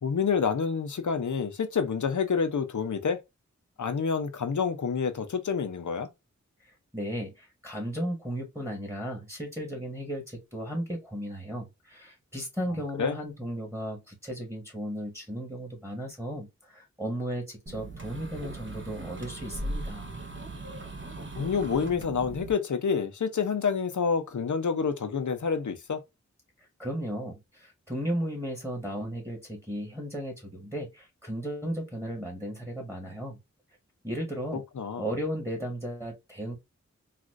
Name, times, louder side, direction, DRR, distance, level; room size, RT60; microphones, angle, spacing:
voice 1, 0.0-3.2 3.8-6.1 13.0-13.2 21.4-26.0 34.8-35.1, left 6 dB, 90° left, 0.7 m, -28 dB
voice 2, 6.9-20.2 26.8-33.4 34.0-34.6 35.0-36.6, equal, 10° right, 1.6 m, -35 dB
sound 1, 17.7-22.5, right 2 dB, 40° right, 1.0 m, -38 dB
4.1 x 2.4 x 2.5 m
wide cardioid pair, 60°, 29 cm